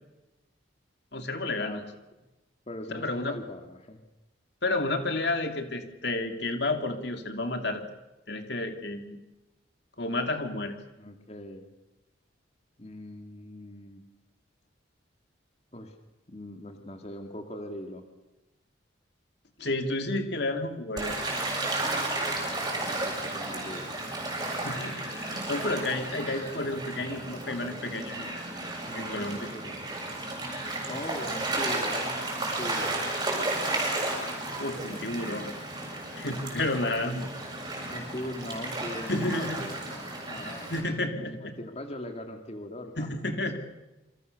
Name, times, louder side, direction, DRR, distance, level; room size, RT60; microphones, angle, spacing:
voice 1, 1.1-1.8 2.9-3.4 4.6-7.8 8.3-9.2 10.0-10.7 19.6-21.1 24.5-28.4 28.9-29.5 34.6-35.5 36.1-37.3 39.1-39.6 40.7-41.6 43.0-43.6, left 2 dB, 60° left, 6 dB, 2.9 m, -31 dB
voice 2, 2.7-4.0 11.0-11.7 12.8-14.0 15.7-16.0 16.3-18.1 22.5-24.0 28.9-29.9 30.9-33.1 36.7-37.2 37.9-40.7 41.2-43.1, left 1 dB, 35° left, 5 dB, 2.6 m, -41 dB
Gull seagull / Waves surf, 21.0-40.8, right 2 dB, 20° right, 7.4 m, -33 dB
28.5 x 26.0 x 6.8 m, 1.0 s
head